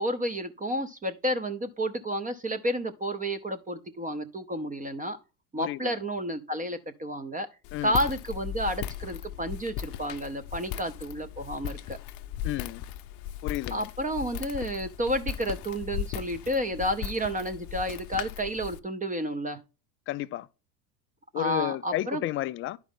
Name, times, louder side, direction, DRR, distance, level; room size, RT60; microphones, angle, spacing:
voice 1, 0.0-5.2 5.5-7.5 7.8-12.0 13.7-19.6 21.3-22.2, equal, 15° right, 0.7 m, -31 dB
voice 2, 5.6-5.9 7.7-8.0 12.4-12.8 13.4-13.9 20.1-20.5 21.3-22.8, left 15 dB, 30° left, 0.3 m, -32 dB
Walk footsteps, 7.6-18.8, left 11 dB, 45° left, 0.7 m, -37 dB
11.0 x 4.9 x 3.6 m
hypercardioid pair, 85°, 50 cm